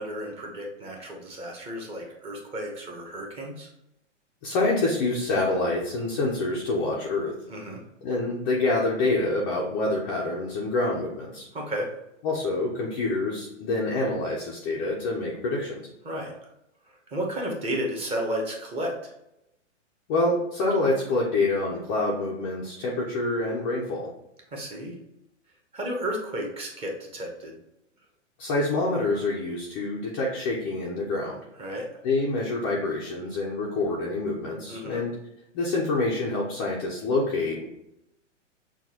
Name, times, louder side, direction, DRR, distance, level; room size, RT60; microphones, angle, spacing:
voice 1, 0.0-3.7 7.5-7.8 11.5-11.9 16.0-16.3 16.9-19.1 24.5-25.0 25.7-27.6 31.6-31.9 34.7-35.0, equal, 15° right, 0 dB, 0.7 m, -33 dB
voice 2, 4.4-7.3 8.0-11.5 12.2-15.9 20.1-24.1 28.4-31.4 32.0-35.1 35.5-37.7, left 2 dB, 20° left, -4 dB, 0.4 m, -26 dB
5.9 x 2.2 x 2.7 m, 0.85 s
hypercardioid pair, 140°, 37 cm